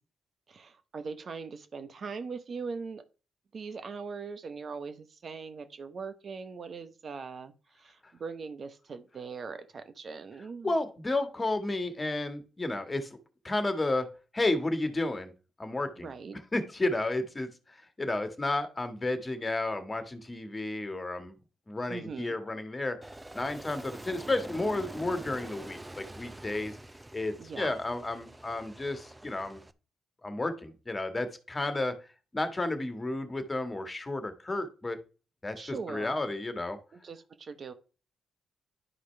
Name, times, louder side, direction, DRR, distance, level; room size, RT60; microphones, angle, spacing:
voice 1, 0.5-3.0 3.5-10.7 16.0-16.4 21.9-22.4 27.4-27.7 35.6-36.2 36.9-37.7, right 5 dB, 55° right, 10 dB, 1.1 m, -41 dB
voice 2, 10.6-13.1 13.4-14.1 14.3-15.3 15.6-16.1 16.5-17.5 18.0-21.3 21.7-23.0 23.3-26.7 27.1-29.6 30.2-32.0 32.3-35.0 35.4-36.8, left 2 dB, 30° left, 8 dB, 1.7 m, -32 dB
Aircraft, 23.0-29.7, right 1 dB, 20° right, 0.7 m, -45 dB
11.0 x 5.0 x 3.4 m, 0.35 s
hypercardioid pair, 45°, 0 cm